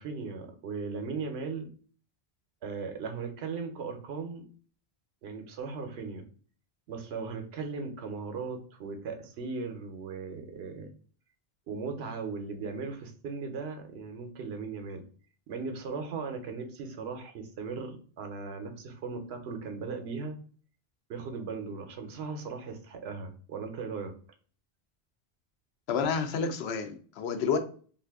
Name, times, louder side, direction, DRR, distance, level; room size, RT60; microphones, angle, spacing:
voice 1, 0.0-1.7 2.6-4.4 5.2-6.3 6.9-10.9 11.7-15.0 15.5-20.4 21.1-24.1, right 4 dB, 80° right, 5 dB, 0.9 m, -37 dB
voice 2, 25.9-27.6, left 6 dB, 80° left, 7 dB, 0.8 m, -29 dB
2.6 x 2.4 x 3.4 m, 0.43 s
omnidirectional pair, 1.1 m